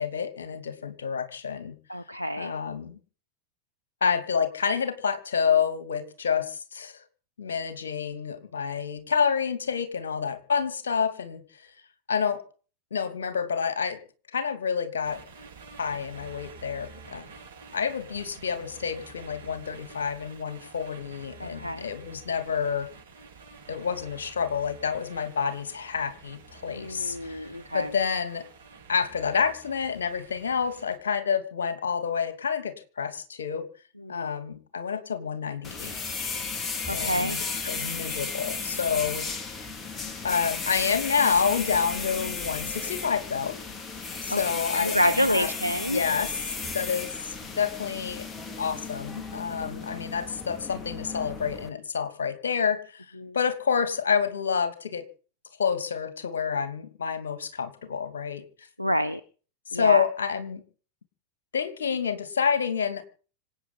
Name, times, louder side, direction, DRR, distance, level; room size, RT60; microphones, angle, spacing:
voice 1, 0.0-1.7 2.4-3.0 4.0-7.0 7.4-11.6 12.1-12.4 12.9-14.0 14.3-15.2 15.8-17.2 17.7-22.9 23.7-27.5 27.7-28.4 28.9-33.6 34.1-35.9 36.9-39.2 40.2-43.6 44.2-45.5 45.8-47.1 47.5-48.2 48.6-53.0 53.3-55.0 55.6-58.4 59.7-60.6 61.5-63.0, left 6 dB, 65° left, 11 dB, 2.7 m, -28 dB
voice 2, 1.9-2.5 21.4-21.8 26.7-27.9 34.1-34.3 36.9-37.4 44.3-44.4 44.7-46.0 49.7-49.9 53.2-53.4 58.8-59.2 59.7-60.0, equal, 85° left, 14 dB, 0.8 m, -28 dB
sound 1, 15.0-31.0, right 4 dB, 65° right, 7.7 m, -49 dB
sound 2, 35.6-51.7, left 4 dB, 20° left, 2.7 m, -34 dB
26.0 x 9.1 x 5.6 m, 0.40 s
figure-of-eight pair, 90°, 0 cm